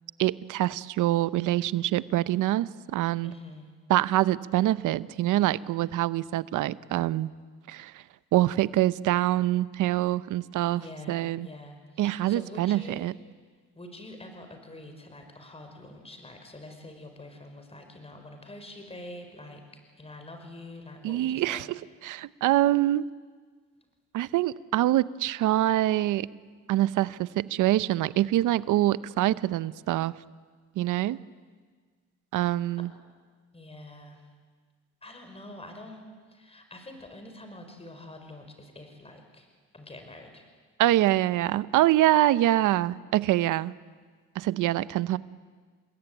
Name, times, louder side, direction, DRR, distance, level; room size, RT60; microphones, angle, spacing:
voice 1, 0.2-3.3 3.9-7.3 7.7-8.0 8.3-10.8 11.1-11.5 12.0-13.1 21.0-21.7 22.0-23.0 24.1-26.3 26.7-30.1 30.8-31.2 32.3-32.9 40.8-43.7 44.3-45.2, right 14 dB, 85° right, 17 dB, 0.8 m, -25 dB
voice 2, 3.2-3.7 10.7-13.2 13.7-19.6 20.0-21.6 33.5-34.3 35.0-36.0 36.3-39.5 39.7-40.5 43.8-43.9, left 1 dB, 20° left, 5 dB, 5.1 m, -46 dB
29.0 x 21.5 x 9.1 m, 1.5 s
cardioid pair, 90°, 30 cm